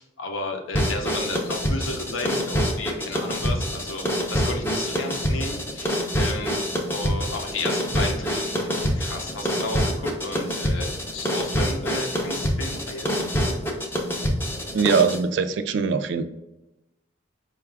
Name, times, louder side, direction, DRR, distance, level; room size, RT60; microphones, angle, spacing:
voice 1, 0.0-4.0 4.3-6.6 6.9-13.1, left 2 dB, 80° left, 3 dB, 0.7 m, -33 dB
sound 1, 0.7-15.2, equal, 10° left, 0.4 m, -26 dB
voice 2, 14.7-16.2, right 5 dB, 60° right, 9 dB, 0.3 m, -22 dB
4.7 x 2.3 x 3.3 m, 0.94 s
head